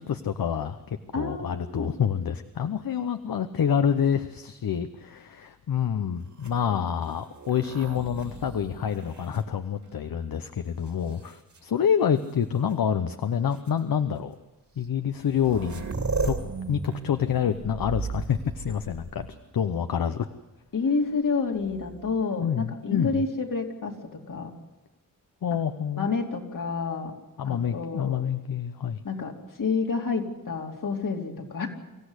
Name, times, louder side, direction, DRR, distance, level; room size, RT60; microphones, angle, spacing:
voice 1, 0.0-14.4 14.8-15.9 16.2-16.4 16.7-19.3 19.5-20.3 22.4-23.2 25.4-26.1 27.4-29.0, left 8 dB, 80° left, 9 dB, 0.9 m, -27 dB
voice 2, 1.1-1.9 20.7-24.5 25.9-27.1 27.5-28.2 29.0-29.3 29.6-31.7, left 4 dB, 65° left, 2 dB, 2.9 m, -29 dB
sound 1, 6.3-10.2 10.9-11.6 12.7-12.8 13.5-13.7 14.8-14.9 15.1-19.6 21.5-22.2, right 4 dB, 55° right, 2.7 m, -36 dB
25.0 x 15.0 x 8.2 m, 1.1 s
wide cardioid pair, 120°, 34 cm